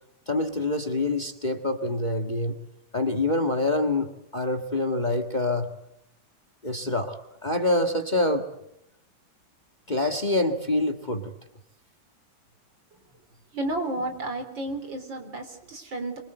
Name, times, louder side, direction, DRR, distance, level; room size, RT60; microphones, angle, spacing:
voice 1, 0.3-2.6 2.9-4.1 4.3-5.7 6.6-8.5 9.9-11.3, left 2 dB, 25° left, 8 dB, 1.6 m, -26 dB
voice 2, 13.5-16.2, right 2 dB, 65° right, 7 dB, 4.5 m, -32 dB
25.5 x 24.0 x 8.1 m, 0.79 s
omnidirectional pair, 2.2 m